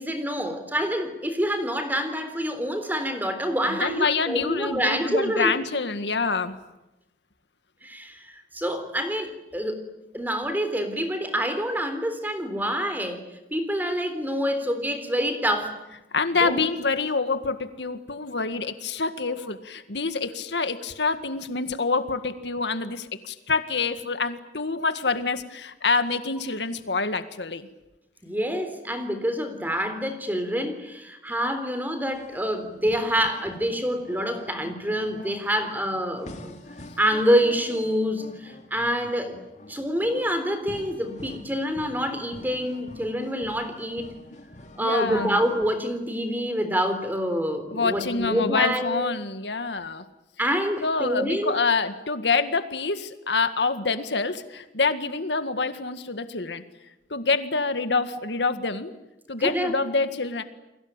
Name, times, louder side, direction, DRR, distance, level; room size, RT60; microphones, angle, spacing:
voice 1, 0.0-5.6 7.8-9.8 10.1-13.2 13.5-15.8 16.3-16.6 28.2-36.6 37.0-39.4 39.7-44.2 44.8-49.1 50.4-51.5 59.4-59.8, equal, 10° right, 8 dB, 3.7 m, -27 dB
voice 2, 3.7-6.6 16.1-27.7 44.8-45.4 47.7-50.0 50.8-56.6 57.1-58.9 59.3-60.4, left 4 dB, 80° left, 10 dB, 1.9 m, -26 dB
sound 1, 32.1-45.7, left 1 dB, 40° left, 2.7 m, -46 dB
30.0 x 22.0 x 9.0 m, 0.94 s
head